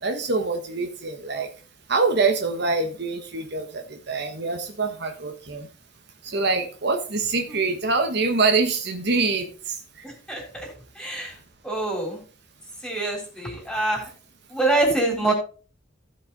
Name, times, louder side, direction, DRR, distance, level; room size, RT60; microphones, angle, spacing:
voice 1, 0.0-1.5 1.9-3.7 4.1-5.7 6.2-9.5, right 3 dB, 55° right, 5 dB, 1.3 m, -24 dB
voice 2, 10.0-11.4 11.6-12.2 12.8-14.1 14.5-15.3, right 2 dB, 5° left, 0 dB, 3.6 m, -25 dB
16.0 x 5.6 x 4.0 m, 0.39 s
head